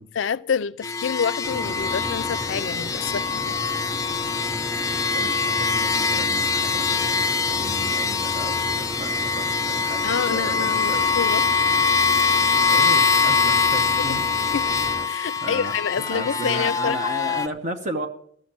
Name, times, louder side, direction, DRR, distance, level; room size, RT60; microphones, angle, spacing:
voice 1, 0.0-3.6 10.0-11.4 11.7-11.8 14.0-14.8 15.1-17.0, left 6 dB, 85° left, 0.4 m, -28 dB
sound 1, 0.8-17.5, left 5 dB, 15° left, 0.4 m, -23 dB
sound 2, 1.4-15.1, equal, 10° right, 0.7 m, -35 dB
voice 2, 5.1-11.1 12.7-14.3 15.4-18.1, right 1 dB, 40° right, 1.0 m, -34 dB
14.0 x 6.5 x 8.8 m
head